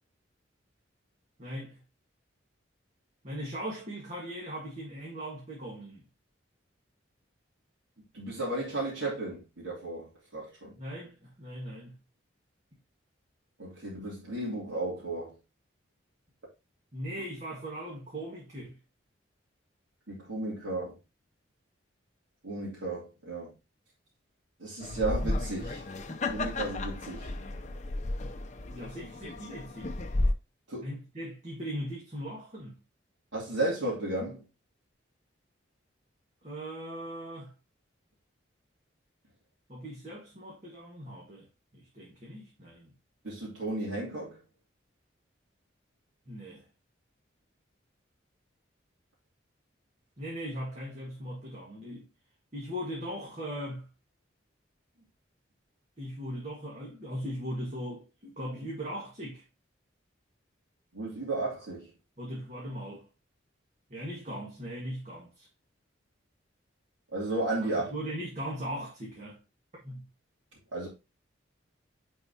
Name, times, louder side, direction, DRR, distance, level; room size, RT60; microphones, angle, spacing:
voice 1, 1.4-1.8 3.2-6.0 10.8-12.0 16.9-18.8 28.7-29.9 30.8-32.8 36.4-37.5 39.7-41.5 41.7-42.9 46.3-46.6 50.2-52.1 52.5-53.9 56.0-59.4 62.2-63.1 63.9-65.5 67.6-69.4 69.8-70.1, equal, 35° right, 1.8 m, -39 dB
voice 2, 8.1-10.7 13.6-15.4 20.1-20.9 22.4-23.5 24.6-25.8 26.3-27.3 30.7-30.9 33.3-34.4 43.2-44.4 60.9-61.9 67.1-67.9 70.7-70.9, right 2 dB, 80° right, 2.7 m, -34 dB
sound 1, 24.8-30.3, left 2 dB, 35° left, 0.6 m, -33 dB
9.7 x 4.6 x 2.8 m
head